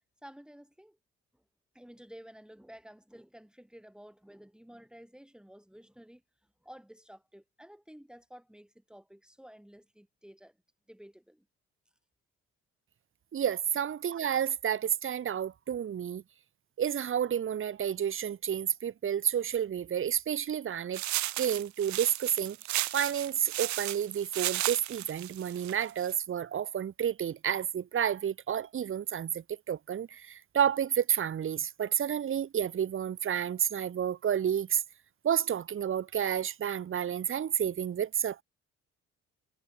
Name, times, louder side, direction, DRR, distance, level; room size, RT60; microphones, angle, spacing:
voice 1, 0.2-1.0 1.3-1.4 1.7-6.2 6.6-10.6 10.9-11.5, equal, 5° right, 7.4 m, -52 dB
voice 2, 13.3-16.2 16.8-21.0 21.4-22.6 22.9-34.8 35.2-38.4, right 9 dB, 45° right, 1.2 m, -30 dB
sound 1, 20.9-26.1, right 16 dB, 70° right, 0.8 m, -34 dB
supercardioid pair, 75°, 29 cm